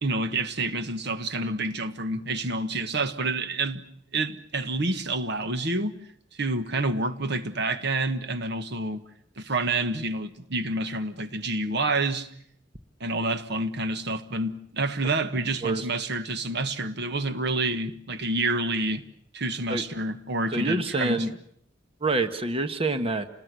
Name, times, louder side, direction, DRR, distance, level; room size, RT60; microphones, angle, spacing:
voice 1, 0.0-3.8 4.1-5.9 6.3-9.0 9.4-12.3 13.0-19.0 19.3-21.3, right 2 dB, 60° right, 1.4 m, -28 dB
voice 2, 20.5-21.3 22.0-23.3, right 2 dB, 30° right, 1.3 m, -26 dB
28.5 x 20.0 x 8.1 m
head